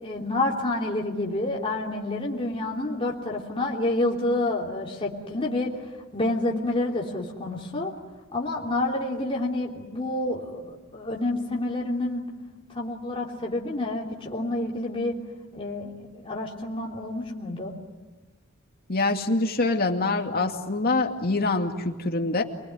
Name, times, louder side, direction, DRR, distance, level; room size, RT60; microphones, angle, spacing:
voice 1, 0.0-5.7 6.1-7.9 8.3-12.2 12.7-15.2 15.5-17.7, left 2 dB, 25° left, -3 dB, 3.2 m, -28 dB
voice 2, 18.9-22.4, left 3 dB, 45° left, 3 dB, 2.3 m, -25 dB
28.0 x 21.0 x 9.6 m, 1.3 s
head